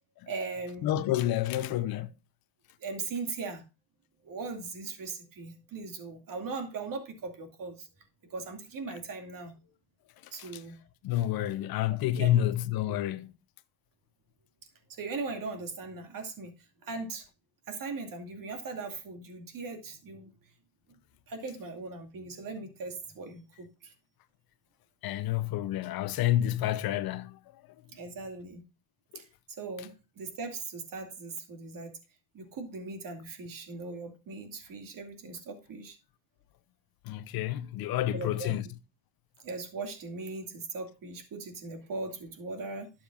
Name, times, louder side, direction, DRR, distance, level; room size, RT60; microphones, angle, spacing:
voice 1, 0.3-1.1 2.8-3.6 4.2-7.9 8.2-9.5 10.3-10.7 12.2-12.4 14.9-16.5 16.8-17.3 17.7-20.3 21.3-23.9 27.9-28.6 29.1-29.3 29.6-31.9 32.3-36.0 38.1-38.7 39.4-42.9, right 3 dB, 45° right, 2.4 m, -39 dB
voice 2, 0.8-2.1 10.4-10.5 11.0-13.3 25.0-27.4 37.1-38.6, left 13 dB, 50° left, 0.7 m, -29 dB
11.5 x 7.4 x 2.5 m
supercardioid pair, 95°, 47 cm